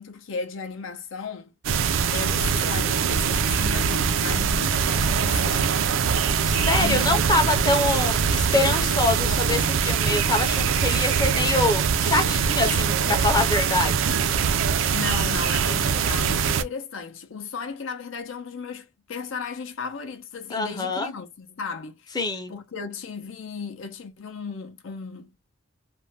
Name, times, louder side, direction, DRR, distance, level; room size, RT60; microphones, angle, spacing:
voice 1, 0.0-1.5 2.1-5.9 6.8-7.5 7.9-8.1 14.9-22.2 22.5-25.3, left 5 dB, 75° left, 0.6 m, -35 dB
sound 1, 1.6-16.6, right 6 dB, 75° right, 0.4 m, -23 dB
voice 2, 6.4-13.9 20.5-21.1 22.1-22.5, left 2 dB, 20° left, 0.6 m, -25 dB
2.5 x 2.1 x 3.1 m
head